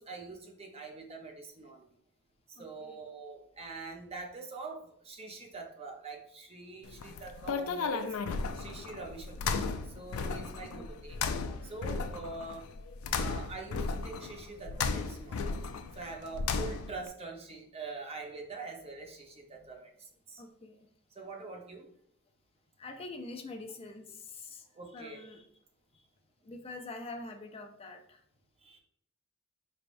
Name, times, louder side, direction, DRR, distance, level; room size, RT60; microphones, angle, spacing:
voice 1, 0.0-1.9 2.5-8.1 8.6-11.2 11.6-12.6 13.1-15.5 15.9-20.4 21.1-21.9 24.7-25.3 28.6-28.8, right 3 dB, 30° right, 2 dB, 0.7 m, -44 dB
voice 2, 2.6-3.0 6.9-7.0 10.8-10.9 20.4-20.9 22.8-24.6 24.9-25.5 25.9-26.1 26.4-28.2, left 2 dB, 30° left, 5 dB, 0.5 m, -45 dB
sound 1, 6.9-17.1, left 4 dB, 85° left, 0.4 m, -35 dB
4.2 x 3.4 x 2.5 m, 0.67 s
head